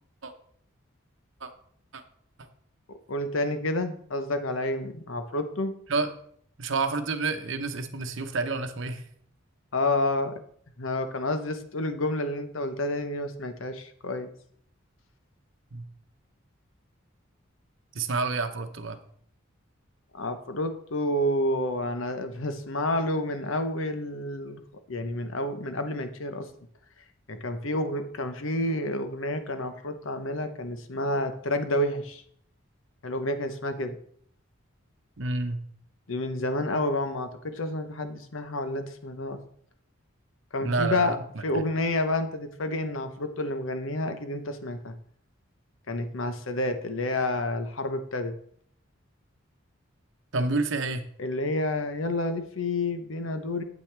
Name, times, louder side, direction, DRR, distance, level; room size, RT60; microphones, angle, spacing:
voice 1, 3.1-5.7 9.7-10.4 10.8-14.3 20.1-24.6 24.9-26.5 27.3-32.2 33.0-34.0 36.1-39.4 40.5-41.2 41.4-44.9 45.9-48.3 51.2-53.6, left 1 dB, 70° left, 9 dB, 0.9 m, -29 dB
voice 2, 6.6-9.0 15.7-15.8 17.9-19.0 35.2-35.6 40.6-41.1 41.5-41.6 50.3-51.0, right 3 dB, 65° right, 8 dB, 0.9 m, -29 dB
8.9 x 8.3 x 3.4 m, 0.62 s
head